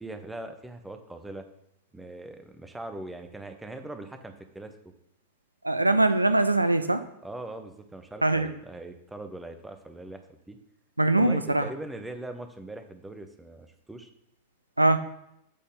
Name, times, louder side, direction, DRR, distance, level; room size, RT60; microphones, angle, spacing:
voice 1, 0.0-1.5 1.9-4.8 7.2-10.6 11.2-14.1, right 2 dB, 5° right, 7 dB, 0.9 m, -41 dB
voice 2, 5.6-7.0 8.2-8.5 11.0-11.6 14.8-15.0, right 2 dB, 85° right, 10 dB, 0.4 m, -22 dB
8.4 x 4.3 x 5.5 m, 0.79 s
figure-of-eight pair, 90°, 0 cm